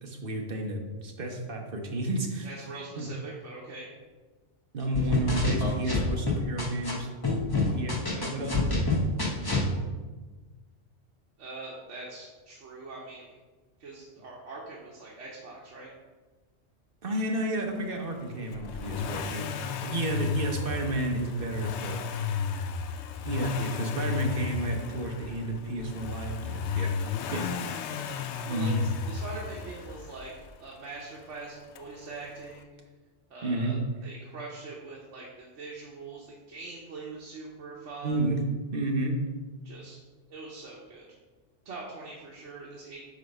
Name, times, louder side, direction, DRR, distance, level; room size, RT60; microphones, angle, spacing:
voice 1, 0.0-2.5 3.0-3.1 4.7-7.1 7.7-8.9 17.0-22.0 23.2-26.9 27.3-27.5 28.5-28.8 33.4-33.8 38.0-38.4 38.7-39.2, right 2 dB, 50° right, 2 dB, 1.1 m, -31 dB
voice 2, 2.4-3.9 11.4-13.4 13.8-15.9 28.5-28.7 29.0-30.3 30.6-32.8 33.3-38.2 39.6-40.0 40.3-41.1 41.6-43.0, right 3 dB, 80° right, -4 dB, 1.3 m, -42 dB
sound 1, 4.9-6.9 7.2-9.7, left 3 dB, 20° left, 1.1 m, -27 dB
Accelerating revving vroom, 18.5-30.5 31.8-31.9, left 6 dB, 75° left, 0.8 m, -33 dB
8.0 x 3.4 x 5.3 m, 1.3 s
omnidirectional pair, 1.2 m